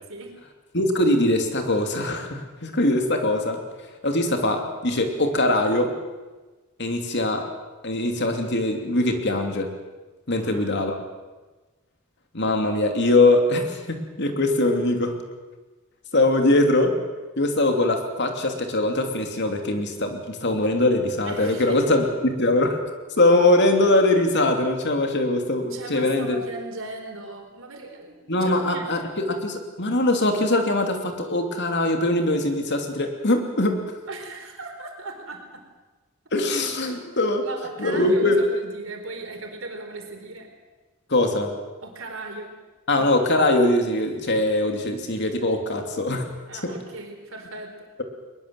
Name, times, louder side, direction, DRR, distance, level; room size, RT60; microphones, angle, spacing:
voice 1, 0.7-3.6 4.0-5.9 6.8-7.5 7.8-9.7 10.3-11.0 12.3-15.2 16.1-17.0 17.4-22.8 23.2-26.4 28.3-33.8 36.3-37.4 37.8-38.4 41.1-41.6 42.9-46.3 46.6-46.8, left 2 dB, 55° left, 4 dB, 2.9 m, -22 dB
voice 2, 10.3-10.8 21.3-21.9 25.7-28.9 34.1-35.6 36.9-37.1 37.4-40.5 41.8-42.5 46.5-47.9, right 2 dB, 65° right, 3 dB, 4.6 m, -37 dB
21.5 x 21.5 x 7.7 m, 1.3 s
head